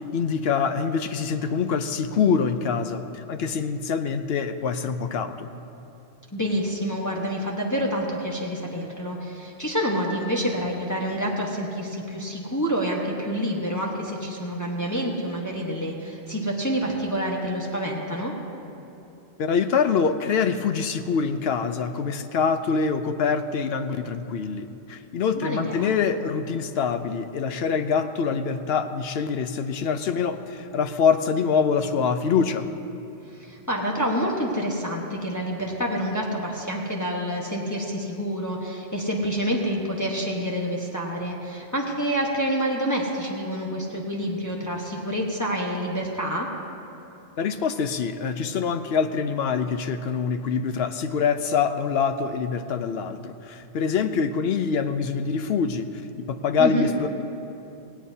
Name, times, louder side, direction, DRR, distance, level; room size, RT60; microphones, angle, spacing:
voice 1, 0.1-5.5 19.4-32.7 47.4-55.9 56.2-57.1, left 6 dB, 65° left, 9 dB, 0.9 m, -25 dB
voice 2, 6.3-18.3 25.4-25.9 33.3-46.5 56.6-56.9, equal, 15° left, -2 dB, 1.2 m, -28 dB
17.5 x 17.5 x 2.8 m, 2.8 s
omnidirectional pair, 1.2 m